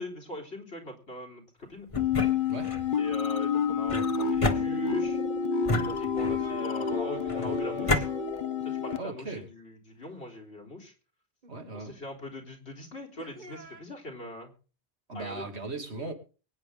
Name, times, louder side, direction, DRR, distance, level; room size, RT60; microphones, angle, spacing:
voice 1, 0.0-1.9 3.0-5.2 5.8-8.1 8.6-10.9 11.7-14.5 15.1-15.4, left 1 dB, 85° left, 4 dB, 3.8 m, -41 dB
sound 1, 1.9-2.9 3.9-5.1 5.6-6.5 7.3-8.1, left 1 dB, 30° left, 1.6 m, -31 dB
sound 2, 2.0-9.0, left 6 dB, 55° left, 1.0 m, -29 dB
sound 3, 6.3-8.8 11.4-11.5 13.2-13.8, right 4 dB, 45° right, 1.3 m, -43 dB
voice 2, 9.0-9.5 11.5-12.0 15.1-16.1, right 3 dB, 80° right, 4 dB, 2.9 m, -37 dB
23.5 x 9.6 x 3.8 m, 0.37 s
omnidirectional pair, 1.1 m